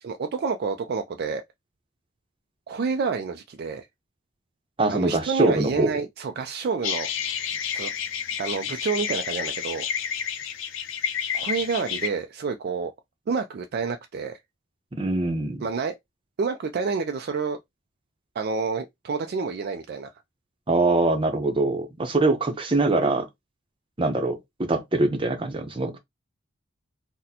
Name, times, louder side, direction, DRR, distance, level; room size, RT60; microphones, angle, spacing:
voice 1, 0.0-1.4 2.7-3.9 4.9-7.1 7.7-7.9 8.4-9.9 11.3-12.9 13.3-14.4 15.6-16.0 16.4-17.6 18.4-20.1, right 5 dB, 50° right, 0.3 m, -28 dB
voice 2, 4.8-5.9 14.9-15.6 20.7-23.3 24.0-26.0, right 2 dB, 25° right, 0.7 m, -23 dB
sound 1, 6.8-12.1, left 8 dB, 70° left, 0.5 m, -30 dB
4.0 x 2.1 x 2.8 m
head